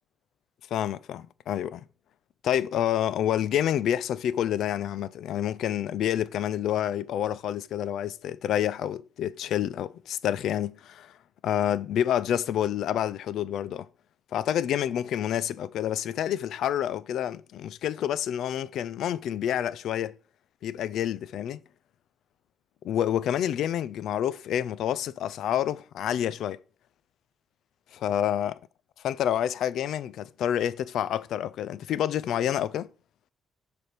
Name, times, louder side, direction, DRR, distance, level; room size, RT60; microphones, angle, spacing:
voice 1, 0.7-1.8 2.4-11.1 11.4-13.9 14.3-20.1 20.6-21.6 22.8-26.6 28.0-28.6 29.0-32.9, left 10 dB, 75° left, 0.4 m, -28 dB
6.8 x 3.4 x 5.8 m
cardioid pair, 90°, 0 cm